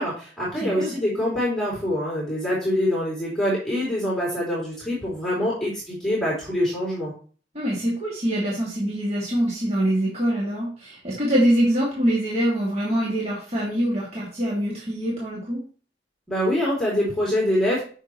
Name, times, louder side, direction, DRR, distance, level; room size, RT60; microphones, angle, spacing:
voice 1, 0.0-7.1 16.3-17.8, left 1 dB, ahead, -6 dB, 3.7 m, -25 dB
voice 2, 0.6-0.9 7.5-15.6, right 1 dB, 35° right, -5 dB, 2.5 m, -24 dB
8.8 x 6.4 x 3.2 m, 0.40 s
head